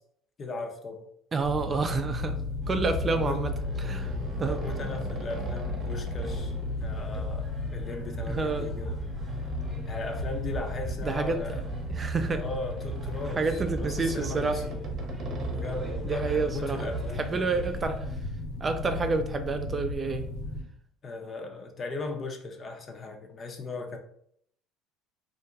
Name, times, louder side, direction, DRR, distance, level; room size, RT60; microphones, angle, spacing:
voice 1, 0.4-1.1 3.1-3.4 4.3-9.0 9.9-11.7 12.3-14.9 15.5-17.6 21.0-24.0, left 3 dB, 40° left, 4 dB, 0.6 m, -37 dB
voice 2, 1.3-2.4 2.7-3.5 3.8-4.1 4.4-4.6 8.3-8.7 11.0-12.4 13.4-14.6 16.0-16.9 17.2-18.0 18.6-20.3, right 4 dB, 30° right, 7 dB, 0.3 m, -29 dB
sound 1, 1.4-20.6, left 3 dB, 80° left, 1.1 m, -35 dB
sound 2, 2.2-2.3 3.4-7.3 8.1-8.2 8.8-10.2 11.3-17.4, right 4 dB, 50° right, 0.8 m, -43 dB
sound 3, 2.6-18.0, right 3 dB, 15° right, 0.9 m, -40 dB
2.5 x 2.1 x 3.8 m, 0.69 s
hypercardioid pair, 70°, 0 cm